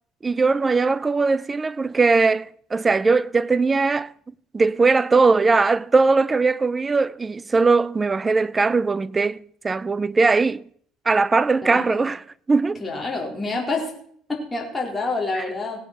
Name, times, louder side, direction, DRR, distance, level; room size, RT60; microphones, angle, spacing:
voice 1, 0.2-4.1 4.5-10.6 11.1-12.8, right 4 dB, 20° right, 0.5 m, -20 dB
voice 2, 11.6-12.0 12.8-13.9 14.3-15.8, left 3 dB, 15° left, 4.0 m, -27 dB
17.0 x 8.6 x 6.0 m
supercardioid pair, 100°, 0 cm